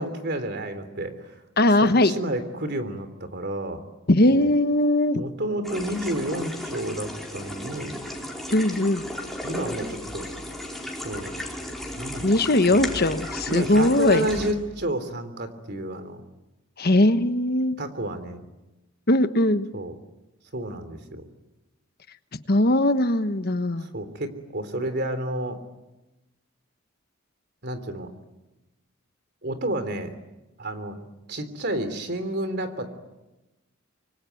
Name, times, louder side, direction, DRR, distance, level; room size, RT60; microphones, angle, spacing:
voice 1, 0.0-1.4 1.8-3.8 4.2-4.5 5.1-8.0 9.4-10.3 11.0-11.3 12.0-12.3 12.7-13.1 13.5-16.2 17.8-18.4 19.7-19.9 20.5-21.3 23.8-25.6 27.6-28.1 29.4-30.1 30.6-31.0 31.3-32.9, right 1 dB, 50° right, 10 dB, 3.3 m, -30 dB
voice 2, 1.6-2.1 4.1-5.2 8.5-9.0 12.2-14.2 16.8-17.8 19.1-19.7 22.5-23.9, left 1 dB, 50° left, 10 dB, 1.2 m, -20 dB
sound 1, 5.6-14.5, left 1 dB, ahead, 4.6 m, -35 dB
25.0 x 25.0 x 9.4 m, 1.0 s
head